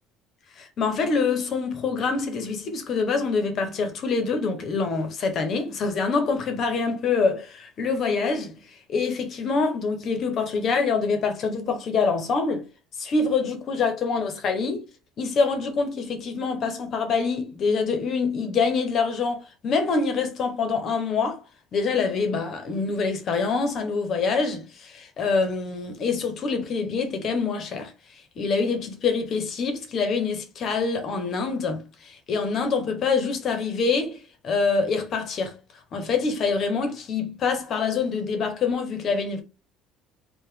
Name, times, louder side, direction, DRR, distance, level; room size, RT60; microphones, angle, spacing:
voice 1, 0.6-8.5 8.9-12.6 13.0-14.8 15.2-21.4 21.7-27.9 28.4-35.5 35.9-39.4, left 4 dB, 35° left, 0.7 m, -25 dB
4.6 x 2.1 x 3.3 m
cardioid pair, 180°, 0 cm